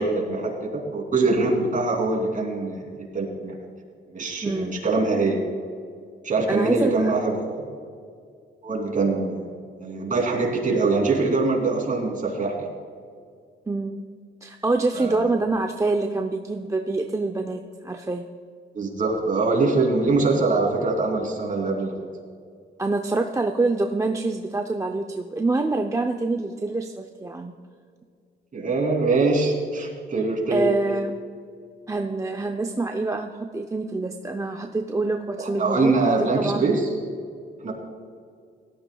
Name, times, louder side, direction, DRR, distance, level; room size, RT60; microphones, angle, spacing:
voice 1, 0.0-3.5 4.1-5.4 6.2-7.7 8.6-9.5 9.8-12.7 14.9-15.2 18.7-21.9 28.5-30.7 35.4-36.9 37.6-37.7, right 3 dB, 40° right, 0 dB, 3.1 m, -23 dB
voice 2, 4.4-4.7 6.5-7.1 13.7-14.0 14.4-18.2 22.8-27.5 30.5-31.2 31.9-36.7, right 3 dB, 15° right, 4 dB, 0.6 m, -26 dB
17.0 x 13.0 x 2.3 m, 2.2 s
cardioid pair, 90°, 20 cm